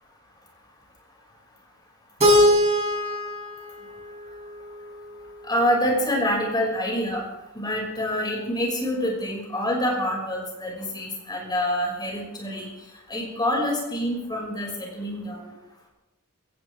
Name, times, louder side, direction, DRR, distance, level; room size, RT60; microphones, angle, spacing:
Keyboard (musical), 2.2-5.1, equal, 30° right, 4.7 m, -22 dB
voice 1, 5.4-7.2 7.5-12.7 13.1-15.5, equal, 20° left, -1 dB, 6.3 m, -26 dB
21.0 x 17.5 x 3.7 m, 1.0 s
head